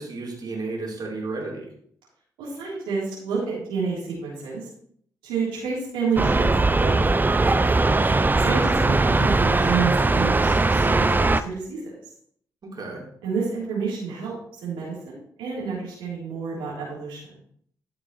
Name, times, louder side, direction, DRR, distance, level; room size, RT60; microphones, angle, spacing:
voice 1, 0.0-1.7 7.8-8.2 12.6-13.0, right 3 dB, 55° right, -3 dB, 3.8 m, -33 dB
voice 2, 2.4-4.7 5.2-7.2 8.4-11.8 13.2-14.3 14.6-17.4, right 5 dB, 80° right, -7 dB, 3.5 m, -29 dB
sound 1, 6.2-11.4, right 3 dB, 20° right, 0.6 m, -20 dB
14.5 x 7.0 x 3.2 m, 0.63 s
hypercardioid pair, 40°, 9 cm